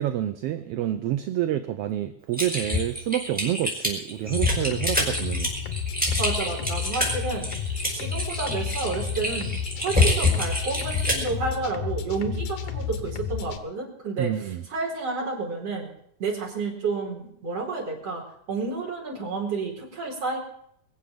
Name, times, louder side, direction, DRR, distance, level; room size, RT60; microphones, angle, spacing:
voice 1, 0.0-5.5 14.2-14.6, right 12 dB, 70° right, 9 dB, 1.5 m, -28 dB
Typing, 2.3-11.3, left 2 dB, 5° right, 4.9 m, -26 dB
sound 1, 4.3-13.6, left 7 dB, 80° left, 2.6 m, -32 dB
voice 2, 6.2-7.5 7.9-15.9 16.2-18.2 18.5-20.4, right 4 dB, 55° right, -1 dB, 5.3 m, -30 dB
22.5 x 7.7 x 7.8 m, 0.69 s
omnidirectional pair, 3.4 m